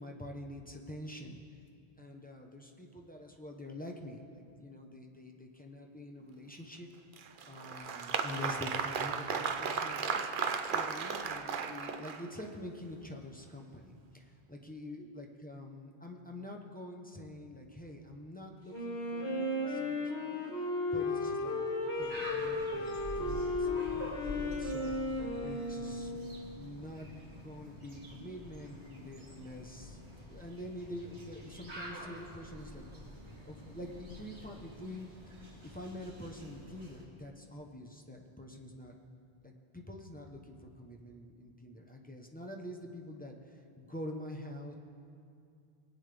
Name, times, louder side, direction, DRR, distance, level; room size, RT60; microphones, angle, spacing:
voice 1, 0.0-1.4 2.0-6.9 7.4-10.3 10.6-20.4 20.9-22.9 23.2-24.9 25.4-30.0 30.3-32.8 33.4-35.1 35.6-38.9 39.4-44.7, left 1 dB, 10° left, 0 dB, 0.8 m, -46 dB
Applause, 7.1-12.5, right 6 dB, 55° right, 0.7 m, -35 dB
Wind instrument woodwind instrument, 18.7-26.4, left 2 dB, 75° left, 2.9 m, -35 dB
sound 1, 22.0-37.0, equal, 75° right, 3.5 m, -47 dB
21.5 x 8.7 x 3.4 m, 2.5 s
omnidirectional pair, 1.1 m